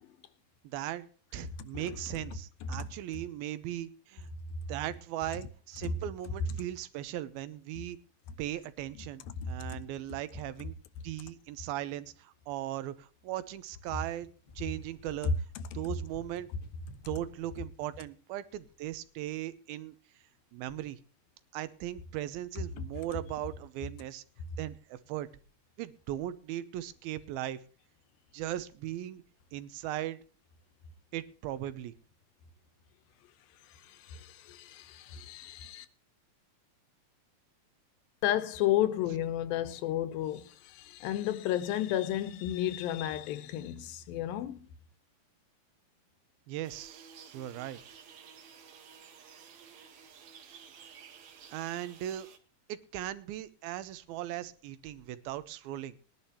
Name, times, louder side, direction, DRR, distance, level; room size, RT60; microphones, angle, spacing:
voice 1, 0.6-1.1 1.3-4.3 4.7-8.0 8.4-10.8 11.0-14.3 14.6-15.3 15.7-16.5 17.1-20.0 20.5-21.0 21.5-24.2 24.6-25.3 25.8-27.6 28.3-29.2 29.5-30.2 31.1-31.9 46.5-47.8 50.5-50.6 51.5-52.3 52.7-56.0, right 13 dB, 85° right, 2.6 m, -38 dB
voice 2, 9.4-9.8 22.8-22.9 33.7-35.9 38.2-44.7, left 12 dB, 85° left, 2.6 m, -33 dB
sound 1, 13.4-17.8, left 4 dB, 60° left, 0.5 m, -55 dB
sound 2, 46.6-52.4, right 7 dB, 60° right, 2.1 m, -53 dB
20.5 x 11.0 x 2.8 m
omnidirectional pair, 4.2 m